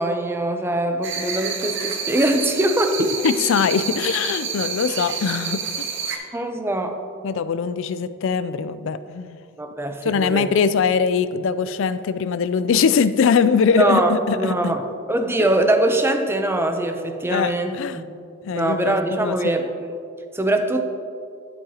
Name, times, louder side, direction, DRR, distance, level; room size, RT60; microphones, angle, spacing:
voice 1, 0.0-3.2 6.3-7.0 9.6-10.5 13.8-14.8 15.1-18.1 18.5-20.0 20.3-20.8, right 1 dB, 10° right, 6 dB, 0.5 m, -22 dB
sound 1, 1.0-6.2, right 6 dB, 65° right, 0.8 m, -29 dB
voice 2, 3.2-5.9 7.2-9.4 10.0-14.7 15.4-15.5 17.3-18.0 18.4-19.6, left 6 dB, 65° left, 13 dB, 0.4 m, -22 dB
10.0 x 8.7 x 2.8 m, 2.4 s
head